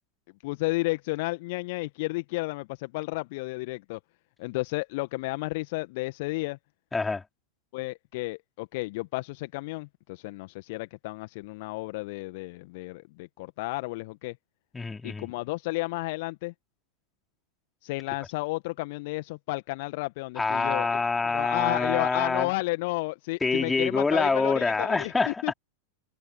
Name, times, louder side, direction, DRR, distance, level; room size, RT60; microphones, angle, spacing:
voice 1, 0.4-4.0 4.4-6.6 7.7-14.4 15.0-16.5 17.8-20.9 21.3-25.5, left 23 dB, 50° left, 1.9 m, -32 dB
voice 2, 6.9-7.2 14.7-15.3 20.4-22.5 23.4-25.5, left 4 dB, 10° left, 3.9 m, -26 dB
figure-of-eight pair, 90°, 0 cm